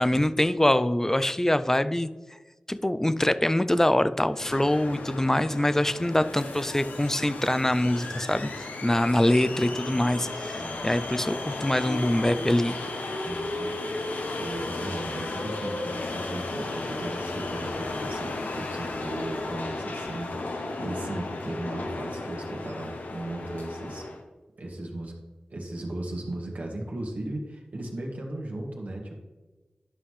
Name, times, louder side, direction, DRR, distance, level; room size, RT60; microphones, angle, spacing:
voice 1, 0.0-2.1 2.7-8.5 8.8-12.8, left 1 dB, 15° left, 13 dB, 0.4 m, -24 dB
sound 1, 4.3-24.2, left 2 dB, 90° left, 0.9 m, -34 dB
voice 2, 10.6-10.9 13.3-14.1 14.3-24.1 24.6-25.1 25.5-29.2, right 1 dB, 65° right, -1 dB, 1.9 m, -36 dB
11.0 x 5.5 x 3.2 m, 1.2 s
cardioid pair, 50°, 3 cm